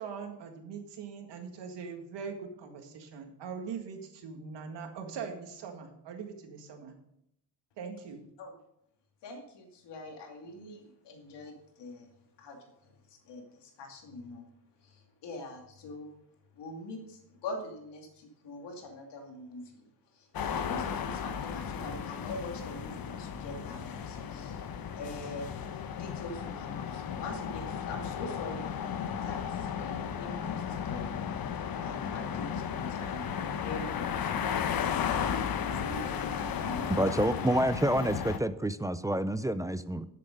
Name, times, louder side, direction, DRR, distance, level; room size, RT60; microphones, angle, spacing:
voice 1, 0.0-7.0 7.8-8.2, right 6 dB, 85° right, 4 dB, 2.0 m, -41 dB
voice 2, 9.2-12.1 12.4-14.5 14.8-16.1 16.6-24.6 25.0-25.5 26.0-28.7 29.1-31.1 31.8-35.3 35.6-37.0, left 2 dB, 85° left, 2 dB, 2.6 m, -44 dB
sound 1, 20.3-38.4, left 7 dB, 60° left, 1.0 m, -34 dB
voice 3, 36.9-40.1, right 1 dB, 10° right, 13 dB, 0.4 m, -28 dB
11.5 x 7.6 x 5.3 m, 0.78 s
cardioid pair, 105°, 41 cm